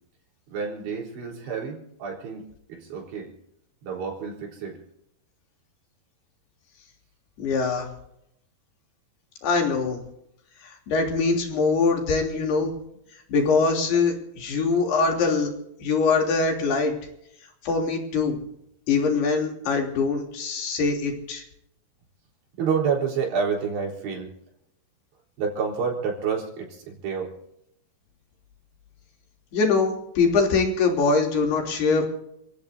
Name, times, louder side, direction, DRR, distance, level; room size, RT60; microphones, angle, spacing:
voice 1, 0.5-3.3 3.8-4.8 22.6-24.3 25.4-27.3, right 6 dB, 85° right, -2 dB, 6.3 m, -29 dB
voice 2, 7.4-7.9 9.4-10.0 10.6-12.7 13.3-15.5 15.8-16.9 17.6-18.3 18.9-21.4 29.5-32.0, left 4 dB, 70° left, 1 dB, 5.1 m, -23 dB
30.0 x 16.0 x 2.7 m, 0.77 s
omnidirectional pair, 5.0 m